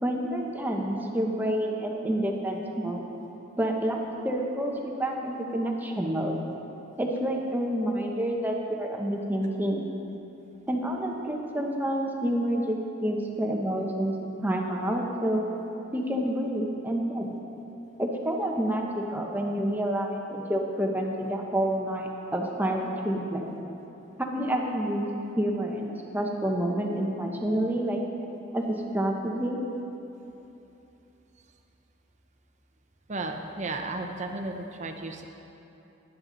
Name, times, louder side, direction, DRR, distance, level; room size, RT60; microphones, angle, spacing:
voice 1, 0.0-3.0 3.6-4.0 4.2-6.4 7.0-9.9 10.7-14.1 14.4-15.5 15.9-17.3 18.0-23.4 24.2-25.1 25.4-28.0 28.5-29.6, right 1 dB, 10° right, 0 dB, 1.0 m, -28 dB
voice 2, 33.1-35.3, right 2 dB, 40° right, 4 dB, 0.9 m, -34 dB
13.5 x 11.0 x 4.0 m, 3.0 s
head